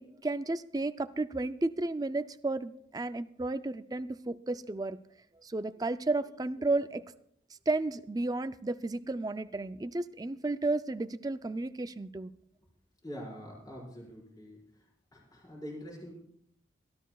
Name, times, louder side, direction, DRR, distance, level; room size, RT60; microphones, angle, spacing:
voice 1, 0.0-5.0 5.4-7.0 7.7-12.3, right 2 dB, 20° right, 12 dB, 0.4 m, -33 dB
voice 2, 13.0-14.6 15.1-16.2, equal, 20° left, -4 dB, 5.0 m, -44 dB
23.0 x 13.0 x 2.3 m, 0.71 s
head